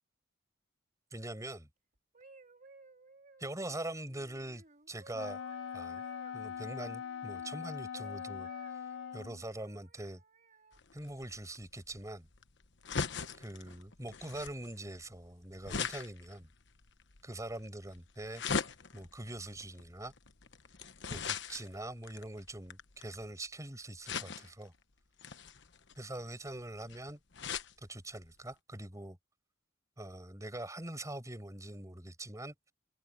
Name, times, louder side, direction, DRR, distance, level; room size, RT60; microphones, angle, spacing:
voice 1, 1.1-1.7 3.4-5.4 5.7-6.0 6.3-8.5 9.1-10.2 10.9-12.3 13.4-16.5 17.2-18.4 18.9-20.1 21.1-24.7 26.0-27.2 27.9-29.2 30.0-32.7, right 1 dB, 15° right, 5.6 m, -43 dB
sound 1, 2.0-7.5 7.9-10.8 11.5-11.7, right 3 dB, 45° right, 4.3 m, -58 dB
Wind instrument woodwind instrument, 5.1-9.4, left 8 dB, 80° left, 0.7 m, -42 dB
sound 2, 10.7-23.3 24.0-24.7 25.2-27.7 28.2-28.3 28.5-28.6, left 5 dB, 65° left, 1.2 m, -41 dB
head